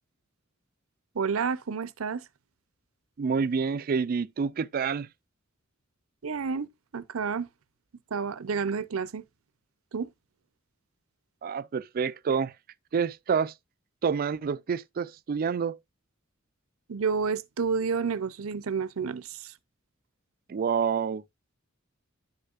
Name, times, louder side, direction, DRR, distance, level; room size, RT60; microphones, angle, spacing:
voice 1, 1.1-2.2 6.2-7.5 8.1-9.2 9.9-10.1 16.9-19.5, right 5 dB, 85° right, 0.6 m, -30 dB
voice 2, 3.2-5.1 11.4-12.5 12.9-13.5 14.0-15.8 20.5-21.2, right 6 dB, 45° right, 0.4 m, -28 dB
10.5 x 6.6 x 2.4 m
head